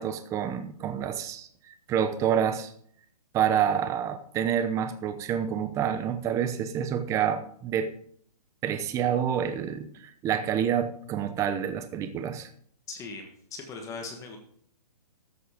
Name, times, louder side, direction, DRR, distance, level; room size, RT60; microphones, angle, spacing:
voice 1, 0.0-1.5 1.9-2.7 3.3-7.9 8.6-12.5, right 9 dB, 15° right, 9 dB, 0.8 m, -28 dB
voice 2, 12.9-14.4, left 4 dB, 15° left, 4 dB, 1.4 m, -39 dB
13.5 x 7.7 x 5.1 m, 0.63 s
hypercardioid pair, 155°, 20 cm